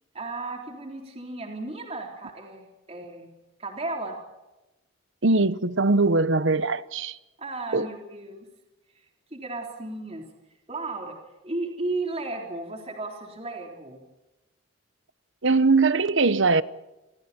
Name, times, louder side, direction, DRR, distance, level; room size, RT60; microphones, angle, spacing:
voice 1, 0.1-3.3 3.6-4.2 7.4-8.5 9.3-10.2 10.7-11.2 11.4-14.0, right 2 dB, 30° right, 3.8 m, -34 dB
voice 2, 5.2-7.2 7.7-7.9 15.4-16.6, right 3 dB, 60° right, 0.9 m, -21 dB
29.5 x 24.0 x 4.4 m
head